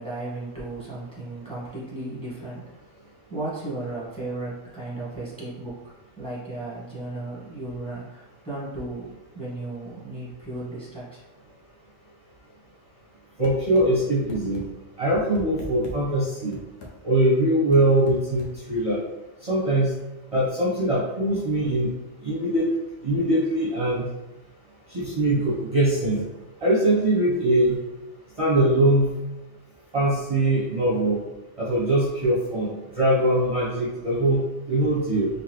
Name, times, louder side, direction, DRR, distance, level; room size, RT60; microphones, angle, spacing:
voice 1, 0.0-2.7 3.3-11.2, right 2 dB, 5° left, -8 dB, 1.3 m, -35 dB
sound 1, 13.4-13.9 14.3-14.6 15.1-16.0 16.5-16.9 17.7-18.5, left 1 dB, 85° left, 1.2 m, -39 dB
voice 2, 13.4-14.6 15.0-16.6 17.0-19.0 19.5-19.9 20.3-21.9 22.2-22.7 23.0-24.1 24.9-26.2 26.6-27.8 28.4-29.1 29.9-31.2 31.7-35.3, right 1 dB, 30° right, -7 dB, 0.8 m, -22 dB
3.9 x 2.9 x 3.0 m, 1.0 s
omnidirectional pair, 1.3 m